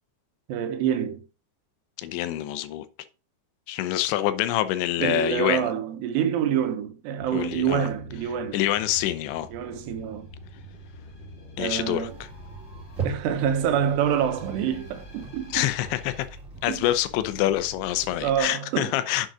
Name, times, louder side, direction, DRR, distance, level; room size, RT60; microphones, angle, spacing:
voice 1, 0.5-1.2 5.0-8.6 9.5-10.3 11.6-12.1 13.0-15.6 16.7-16.8 18.2-19.0, right 9 dB, 75° right, 3.1 m, -26 dB
voice 2, 2.0-2.9 3.7-5.7 7.3-7.9 8.5-9.5 11.6-12.1 15.5-16.3 16.6-19.3, left 13 dB, 85° left, 3.1 m, -26 dB
sound 1, 7.2-16.2, left 1 dB, 35° left, 1.9 m, -46 dB
sound 2, 12.1-18.5, right 5 dB, 30° right, 1.5 m, -40 dB
7.7 x 6.5 x 4.8 m
omnidirectional pair, 5.1 m